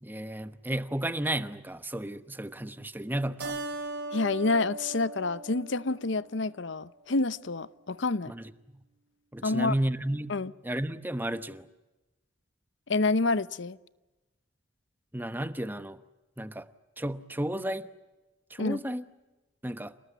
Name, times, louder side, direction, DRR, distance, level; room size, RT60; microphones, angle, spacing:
voice 1, 0.0-3.6 8.3-8.5 9.3-10.3 10.6-11.7 15.1-16.0 16.4-16.6 17.0-17.9 18.5-19.0 19.6-19.9, right 1 dB, 10° right, 1.0 m, -33 dB
Keyboard (musical), 3.4-6.3, right 2 dB, 55° right, 5.1 m, -38 dB
voice 2, 4.1-8.3 9.4-9.7 10.3-10.5 12.9-13.8 18.6-18.8, left 3 dB, 65° left, 0.8 m, -28 dB
28.0 x 19.0 x 9.4 m
head